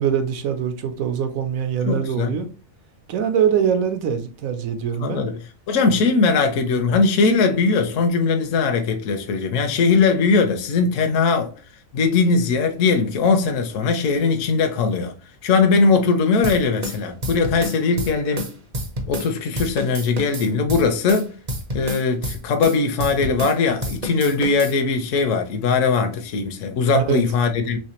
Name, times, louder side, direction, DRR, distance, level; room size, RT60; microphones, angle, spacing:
voice 1, 0.0-2.5 3.1-5.3 26.9-27.2, right 8 dB, 80° right, 1.1 m, -23 dB
voice 2, 1.9-2.3 5.0-5.4 5.7-11.5 11.9-15.1 15.4-18.5 19.1-21.3 21.7-27.8, left 4 dB, 70° left, 1.0 m, -20 dB
sound 1, 16.4-19.3 19.6-23.6 23.8-24.7, equal, 40° right, 0.6 m, -29 dB
3.3 x 3.2 x 2.9 m
omnidirectional pair, 1.4 m